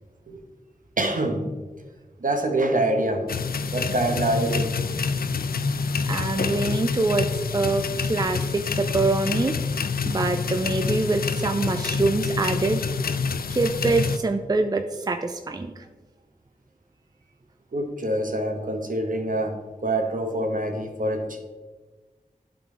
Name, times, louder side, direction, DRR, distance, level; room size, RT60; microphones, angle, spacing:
voice 1, 1.0-1.5 2.2-3.3 3.7-4.9 17.7-19.6 19.8-21.4, right 1 dB, 65° right, 4 dB, 1.1 m, -25 dB
sound 1, 3.3-14.2, left 5 dB, 85° left, 0.4 m, -27 dB
voice 2, 6.1-9.6 10.0-12.8 13.5-15.9, right 3 dB, 25° right, 6 dB, 0.4 m, -25 dB
11.5 x 4.0 x 3.7 m, 1.3 s
wide cardioid pair, 55°, 15 cm